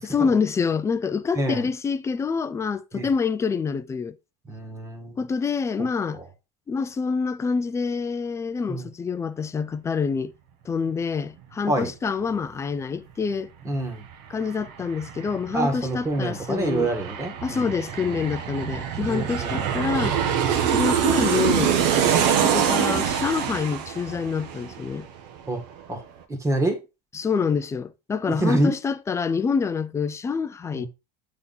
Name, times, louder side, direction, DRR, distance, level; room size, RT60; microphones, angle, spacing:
voice 1, 0.0-4.2 5.2-6.2 6.7-10.3 10.7-13.5 14.3-16.9 17.4-20.2 20.7-21.8 22.3-25.1 27.1-30.9, left 5 dB, 15° left, 0.3 m, -26 dB
voice 2, 1.3-1.6 2.9-3.1 4.5-5.2 6.1-6.2 8.7-8.9 11.7-11.9 13.6-14.0 15.5-17.7 18.0-18.2 19.1-19.8 25.5-25.6 25.9-26.0 26.3-26.8 28.3-28.7 30.7-30.9, right 2 dB, 15° right, 1.7 m, -27 dB
Aircraft, 13.7-13.8 14.1-25.4 25.7-25.8, right 8 dB, 80° right, 1.2 m, -25 dB
8.6 x 3.6 x 4.1 m
cardioid pair, 150°, 21 cm